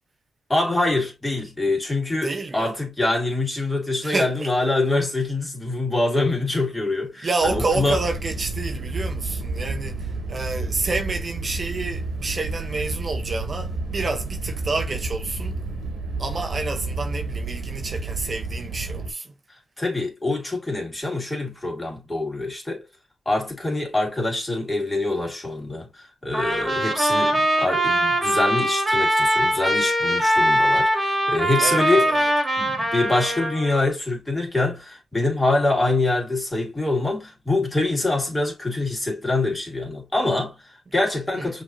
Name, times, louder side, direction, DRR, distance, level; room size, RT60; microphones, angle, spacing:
voice 1, 0.5-8.0 19.8-22.8 23.3-32.1 32.6-41.6, left 2 dB, 20° left, 2.3 m, -25 dB
voice 2, 2.2-2.7 4.0-4.5 7.2-15.6 16.2-19.3 31.6-32.3 41.4-41.5, right 3 dB, 45° right, 0.6 m, -29 dB
sound 1, 7.4-19.1, right 3 dB, 80° right, 1.5 m, -30 dB
Trumpet, 26.3-33.8, equal, 20° right, 2.0 m, -22 dB
5.6 x 3.0 x 2.5 m
cardioid pair, 60°, 0 cm